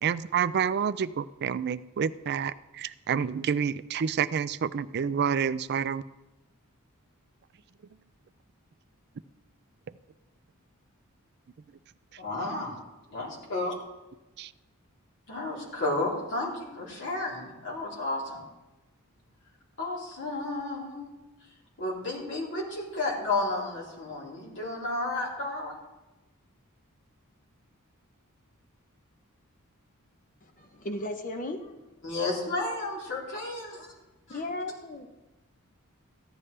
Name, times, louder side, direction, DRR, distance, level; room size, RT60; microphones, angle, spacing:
voice 1, 0.0-6.0 14.4-14.5, right 7 dB, 50° right, 14 dB, 0.4 m, -28 dB
voice 2, 12.2-12.7 13.1-13.7 15.3-18.4 19.8-21.1 21.8-25.8 32.0-33.9 34.3-34.4, left 2 dB, 55° left, -4 dB, 3.6 m, -32 dB
voice 3, 30.6-31.7 34.3-35.1, left 1 dB, 40° left, 5 dB, 0.8 m, -35 dB
15.0 x 11.0 x 3.3 m, 1.1 s
head